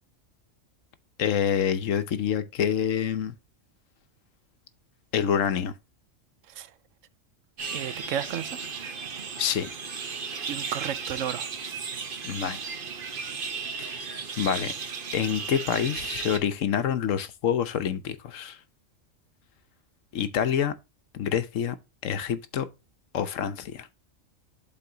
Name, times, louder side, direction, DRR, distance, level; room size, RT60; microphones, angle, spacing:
voice 1, 1.2-3.3 5.1-5.7 9.4-9.7 12.2-12.6 13.8-14.7 15.1-18.6 20.1-20.7 21.1-21.8 22.0-22.7 23.1-23.9, left 8 dB, 75° left, 1.1 m, -27 dB
sound 1, 7.6-16.4, right 5 dB, 45° right, 1.0 m, -35 dB
voice 2, 7.7-8.6 10.5-11.5, right 10 dB, 75° right, 1.0 m, -33 dB
11.5 x 4.1 x 2.8 m
omnidirectional pair, 1.3 m